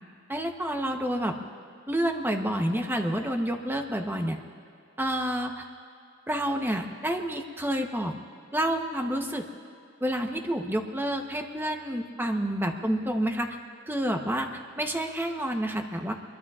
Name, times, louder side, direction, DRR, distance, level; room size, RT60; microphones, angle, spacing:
voice 1, 0.3-1.4 1.9-4.4 5.0-5.7 6.3-8.1 8.5-9.5 10.0-13.6 13.9-16.1, right 1 dB, 10° right, 3 dB, 0.9 m, -29 dB
24.0 x 22.5 x 2.5 m, 2.4 s
head